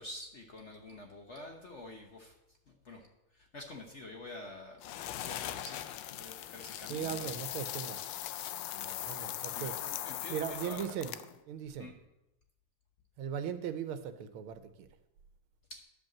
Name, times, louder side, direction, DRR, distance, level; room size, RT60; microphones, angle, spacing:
voice 1, 0.0-2.3 2.7-3.1 3.3-5.8 6.1-7.4 8.7-9.1 9.5-11.0 11.8-11.9 15.7-15.8, left 2 dB, 45° left, 2 dB, 1.0 m, -48 dB
sound 1, 4.8-11.4, left 12 dB, 75° left, 1.2 m, -40 dB
voice 2, 6.9-8.1 9.0-9.8 10.3-11.2 11.5-11.9 13.2-14.9, right 8 dB, 85° right, 10 dB, 1.6 m, -38 dB
11.0 x 5.3 x 7.2 m, 0.91 s
omnidirectional pair, 2.3 m